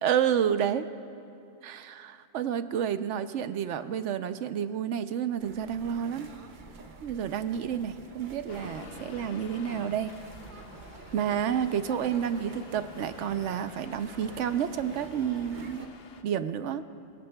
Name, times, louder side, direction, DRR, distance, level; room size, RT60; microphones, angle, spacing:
voice 1, 0.0-0.9 1.6-6.3 7.0-10.1 11.1-15.9 16.2-16.8, right 9 dB, 75° right, 11 dB, 0.9 m, -30 dB
sound 1, 5.4-15.9, right 3 dB, 45° right, 0.9 m, -48 dB
Accelerating revving vroom, 8.5-16.2, left 5 dB, 55° left, 0.9 m, -49 dB
26.5 x 17.5 x 2.3 m, 2.6 s
omnidirectional pair, 1.3 m